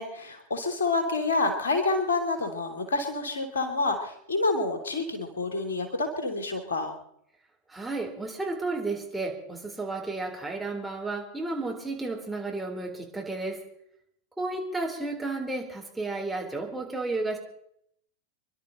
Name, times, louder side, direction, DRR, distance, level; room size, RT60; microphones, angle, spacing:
voice 1, 0.0-6.9, left 3 dB, 65° left, 6 dB, 3.1 m, -28 dB
voice 2, 7.7-13.6 14.4-17.4, right 2 dB, 5° right, -1 dB, 4.2 m, -32 dB
27.0 x 12.0 x 4.4 m, 0.72 s
figure-of-eight pair, 90°, 0 cm